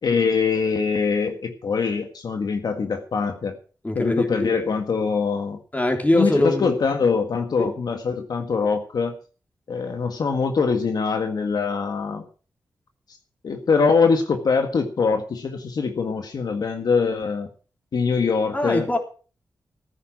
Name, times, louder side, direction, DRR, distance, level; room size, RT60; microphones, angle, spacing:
voice 1, 0.0-3.6 3.9-5.6 6.1-9.2 9.7-12.3 13.4-17.5 17.9-18.9, left 5 dB, 70° left, 1.8 m, -23 dB
voice 2, 3.8-4.5 5.7-6.7 7.6-7.7 18.5-19.0, left 1 dB, 20° left, 3.6 m, -22 dB
15.0 x 9.8 x 6.1 m
cardioid pair, 80°, 7 cm